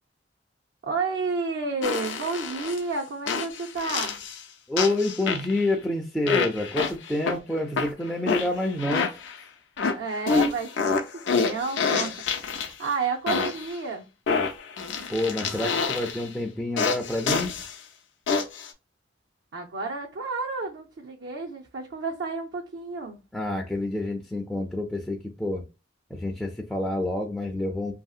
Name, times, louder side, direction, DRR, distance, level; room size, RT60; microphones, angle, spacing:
voice 1, 0.8-4.2 9.9-11.0 11.3-14.1 19.5-23.2, right 4 dB, 75° right, 0.5 m, -31 dB
sound 1, 1.8-2.8 3.3-4.4 4.8-5.7 6.3-7.4 7.8-9.4 9.8-12.9 13.3-13.7 14.3-16.3 16.8-17.7 18.3-18.7, left 5 dB, 75° left, 0.4 m, -27 dB
voice 2, 4.7-9.1 15.1-17.5 23.3-25.6 26.1-27.9, left 1 dB, 5° left, 0.3 m, -28 dB
2.8 x 2.7 x 2.3 m
head